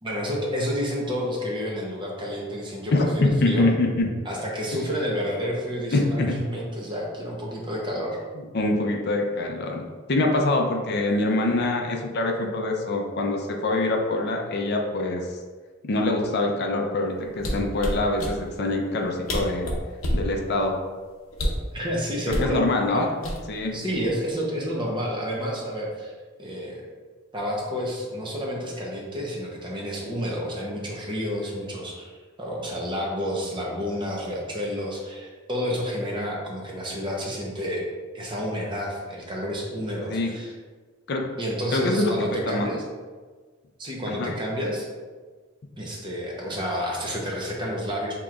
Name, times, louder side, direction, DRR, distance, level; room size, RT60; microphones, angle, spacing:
voice 1, 0.0-3.7 4.2-8.2 21.7-22.6 22.9-23.1 23.7-26.1 26.4-26.8 27.3-32.1 32.4-37.9 38.1-40.5 41.4-42.8 43.8-44.9 45.8-48.2, equal, 25° right, -2 dB, 0.8 m, -30 dB
voice 2, 2.9-4.1 5.9-6.3 8.5-9.8 10.1-15.2 15.8-19.7 20.1-20.7 22.3-23.1 23.5-23.8 40.1-40.3 41.1-41.2 41.7-42.7 44.1-44.3, left 2 dB, 55° left, 2 dB, 0.5 m, -24 dB
sound 1, 17.4-18.4 19.0-19.1 19.3-20.3 21.3-21.7 22.3-22.5 23.2-23.7 24.0-24.3, equal, 85° left, 0.8 m, -27 dB
7.0 x 2.9 x 2.4 m, 1.5 s
head